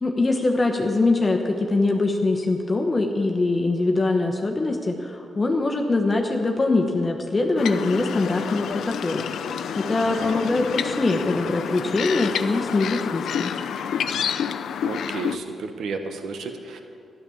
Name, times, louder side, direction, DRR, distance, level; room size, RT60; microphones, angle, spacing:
voice 1, 0.0-9.2 9.7-13.5, left 2 dB, 25° left, 2 dB, 1.0 m, -23 dB
sound 1, 7.6-15.4, left 8 dB, 80° left, 0.5 m, -29 dB
voice 2, 10.0-10.4 14.8-15.4 15.8-16.8, right 4 dB, 75° right, 6 dB, 1.2 m, -32 dB
13.0 x 11.0 x 7.1 m, 2.7 s
cardioid pair, 120°, 0 cm